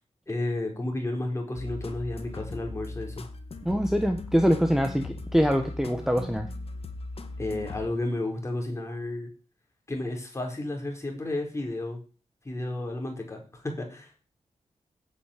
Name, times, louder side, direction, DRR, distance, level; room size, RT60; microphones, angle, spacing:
voice 1, 0.3-3.3 7.4-9.3 9.9-12.0 12.4-14.1, left 2 dB, 25° left, 1 dB, 4.4 m, -32 dB
sound 1, 1.5-8.3, left 2 dB, 50° left, 1.7 m, -39 dB
voice 2, 3.6-6.5, equal, 5° right, 5 dB, 1.4 m, -24 dB
8.9 x 8.3 x 8.6 m, 0.37 s
wide cardioid pair, 110°, 12 cm